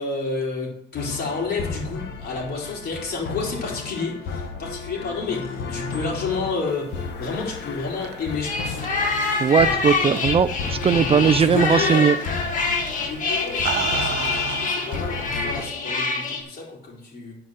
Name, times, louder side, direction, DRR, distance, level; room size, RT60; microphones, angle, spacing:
voice 1, 0.0-9.5 11.4-12.0 13.0-17.4, left 4 dB, 60° left, -3 dB, 4.2 m, -30 dB
sound 1, 0.9-15.6, left 5 dB, 75° left, 1.4 m, -33 dB
sound 2, 7.5-10.4 10.8-11.2 12.5-12.7 13.3-15.4, right 10 dB, 75° right, 0.7 m, -33 dB
sound 3, 8.4-16.4, left 3 dB, 45° left, 1.8 m, -26 dB
voice 2, 9.4-12.2, right 7 dB, 35° right, 15 dB, 0.4 m, -19 dB
9.5 x 5.0 x 7.9 m, 0.78 s
cardioid pair, 125°, 18 cm